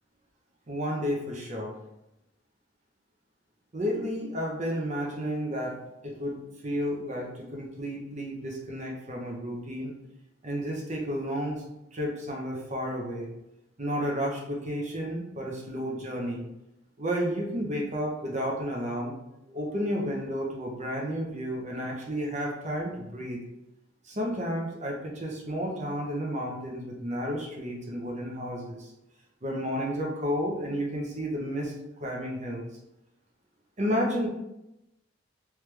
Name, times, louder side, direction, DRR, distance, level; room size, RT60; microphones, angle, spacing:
voice 1, 0.7-1.7 3.7-5.8 6.0-9.9 10.4-11.6 11.9-13.3 13.8-16.4 17.0-19.1 19.5-23.4 24.0-28.9 29.4-31.7 32.0-32.7 33.8-34.3, equal, 40° right, -1 dB, 0.8 m, -32 dB
3.2 x 3.2 x 3.3 m, 0.87 s
head